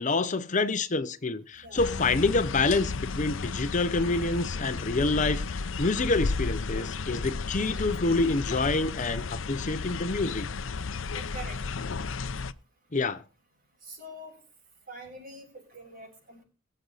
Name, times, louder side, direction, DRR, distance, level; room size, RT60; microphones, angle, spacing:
voice 1, 0.0-10.5 12.9-13.2, left 3 dB, 40° left, 0.8 m, -27 dB
sound 1, 1.8-12.5, left 4 dB, 75° left, 0.7 m, -33 dB
voice 2, 11.1-11.6 13.8-14.4 14.9-16.4, right 1 dB, 45° right, 7.1 m, -44 dB
22.5 x 7.8 x 4.0 m
head